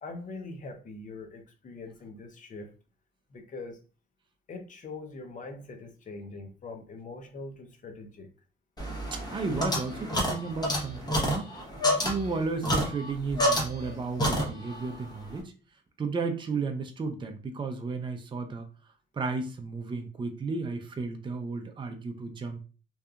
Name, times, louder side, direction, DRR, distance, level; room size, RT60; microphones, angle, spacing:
voice 1, 0.0-2.7 3.3-3.8 4.5-8.3, left 3 dB, 40° left, 6 dB, 0.6 m, -42 dB
sound 1, 8.8-13.9 14.2-14.9, equal, 20° left, 0.9 m, -29 dB
voice 2, 9.1-11.5 12.0-15.5 16.0-18.7 19.1-22.6, right 4 dB, 25° right, 6 dB, 0.4 m, -33 dB
2.7 x 2.3 x 2.3 m, 0.36 s
cardioid pair, 90°, 20 cm